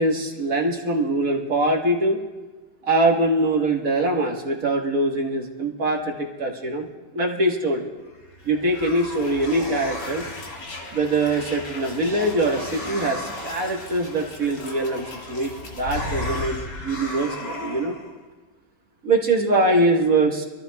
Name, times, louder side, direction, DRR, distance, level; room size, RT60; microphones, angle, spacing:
voice 1, 0.0-2.2 2.8-6.9 7.1-7.9 8.5-10.3 10.9-18.0 19.0-20.5, right 2 dB, 55° right, 0 dB, 1.8 m, -23 dB
sound 1, 8.1-18.1, left 2 dB, 75° left, 2.5 m, -35 dB
26.5 x 14.0 x 2.3 m, 1.3 s
omnidirectional pair, 1.9 m